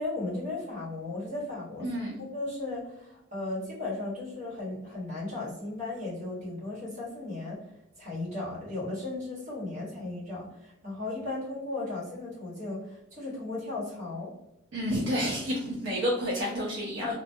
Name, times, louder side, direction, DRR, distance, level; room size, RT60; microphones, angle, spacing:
voice 1, 0.0-1.9 2.2-7.7 8.0-14.3 17.0-17.1, left 2 dB, 35° right, -6 dB, 1.1 m, -36 dB
voice 2, 1.8-2.2 14.7-17.1, equal, 65° right, -4 dB, 0.5 m, -30 dB
2.3 x 2.2 x 2.6 m, 0.82 s
head